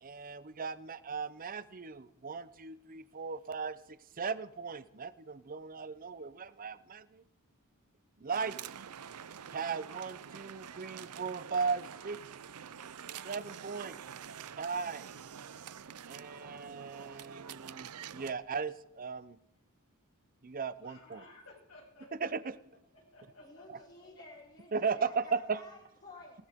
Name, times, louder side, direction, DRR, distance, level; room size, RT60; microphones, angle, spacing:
voice 1, 0.0-3.8 4.2-7.2 8.2-8.6 9.5-12.2 13.2-14.0 14.6-15.1 16.1-19.4 20.4-21.2 22.2-22.5 23.7-23.8 24.7-25.6, right 5 dB, 40° right, 15 dB, 0.7 m, -37 dB
sound 1, 8.3-18.3, right 8 dB, 90° right, 0.6 m, -47 dB
voice 2, 20.8-22.3 22.9-24.1, left 2 dB, 70° left, -2 dB, 7.5 m, -56 dB
voice 3, 23.4-26.5, left 2 dB, 45° left, -7 dB, 4.5 m, -53 dB
20.0 x 19.5 x 3.7 m, 0.81 s
head